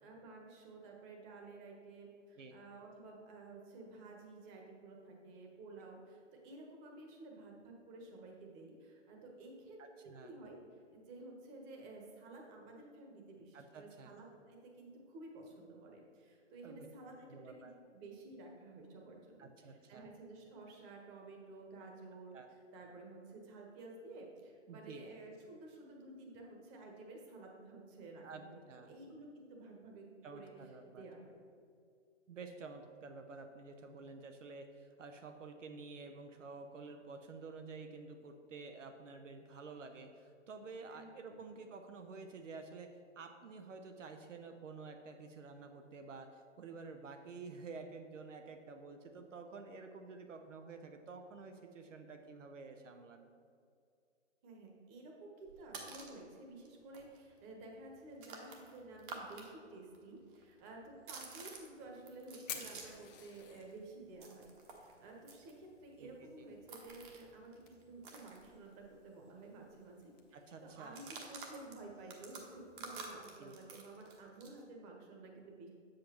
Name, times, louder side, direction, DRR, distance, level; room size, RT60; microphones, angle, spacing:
voice 1, 0.0-10.6 10.9-30.1 30.3-30.5 30.8-31.4 40.9-41.4 54.4-64.5 64.7-75.7, right 2 dB, 25° right, 0 dB, 1.2 m, -53 dB
voice 2, 9.8-10.3 13.5-14.2 16.6-16.9 17.3-17.7 19.4-20.1 22.3-22.5 24.7-25.1 28.2-28.9 30.2-31.0 32.3-53.3 66.0-66.5 70.3-71.0 73.4-73.6, right 4 dB, 80° right, 6 dB, 0.7 m, -50 dB
sound 1, 55.4-56.2 56.6-56.7 56.9-59.5 59.7-63.1 63.4-69.0 69.3-69.4 69.7-70.1 70.8-74.6, right 4 dB, 45° right, 1.2 m, -51 dB
Fire, 61.4-73.0, left 8 dB, 35° left, 0.8 m, -56 dB
7.4 x 7.2 x 3.0 m, 2.3 s
hypercardioid pair, 130°, 37 cm